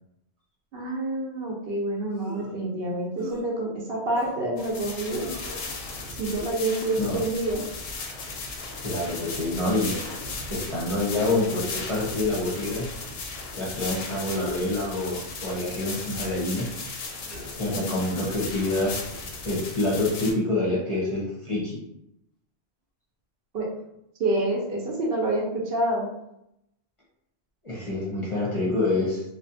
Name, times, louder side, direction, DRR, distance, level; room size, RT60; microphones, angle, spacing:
voice 1, 0.7-5.3 6.1-7.6 17.7-18.0 23.5-23.7 24.2-26.1, right 2 dB, 65° right, -1 dB, 0.8 m, -27 dB
sound 1, 2.1-2.6 3.2-3.4 4.1-4.4 5.2-5.7 6.3-6.7 7.4-7.9 8.8-9.0 9.9-10.3 11.1-11.6 12.5-12.8 13.8-14.1 15.0-15.2 16.1-16.4 17.3-17.6, equal, 20° right, 0.4 m, -41 dB
sound 2, 4.6-20.3, left 3 dB, 70° left, 0.8 m, -36 dB
voice 2, 8.8-9.9 10.5-12.9 13.6-16.7 17.6-19.0 19.4-21.8 27.6-29.2, left 2 dB, 35° left, -6 dB, 0.6 m, -27 dB
2.6 x 2.1 x 2.6 m, 0.80 s
omnidirectional pair, 1.1 m